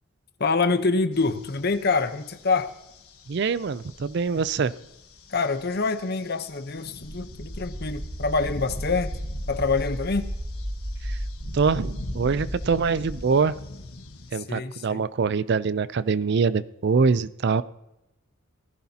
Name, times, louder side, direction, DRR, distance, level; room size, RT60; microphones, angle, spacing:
voice 1, 0.4-2.7 5.3-9.1 9.5-10.3 14.3-15.0, left 4 dB, 45° left, 10 dB, 0.8 m, -26 dB
sound 1, 1.1-14.3, left 2 dB, 85° left, 1.4 m, -44 dB
voice 2, 3.3-4.7 11.0-11.2 11.5-13.5 14.3-17.6, right 5 dB, 50° right, 16 dB, 0.4 m, -24 dB
sound 2, 7.0-13.2, equal, 85° right, 3.4 m, -34 dB
17.5 x 14.5 x 2.8 m, 0.90 s
head